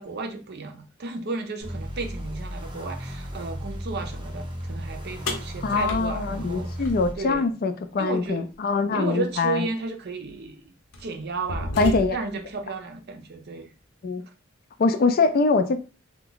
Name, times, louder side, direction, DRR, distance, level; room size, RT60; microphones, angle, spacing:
voice 1, 0.0-6.9 7.2-7.5 8.0-8.4 8.9-10.7 11.0-13.7, right 3 dB, 55° right, 0.6 m, -33 dB
sound 1, 1.6-7.1, equal, 25° right, 0.9 m, -35 dB
sound 2, 5.3-7.4 9.3-9.4 10.2-10.4 10.9-12.4, left 1 dB, 80° left, 0.8 m, -33 dB
voice 2, 5.6-9.6 11.8-12.2 14.0-14.2 14.8-15.8, left 4 dB, 50° left, 0.4 m, -23 dB
2.9 x 2.2 x 3.9 m
head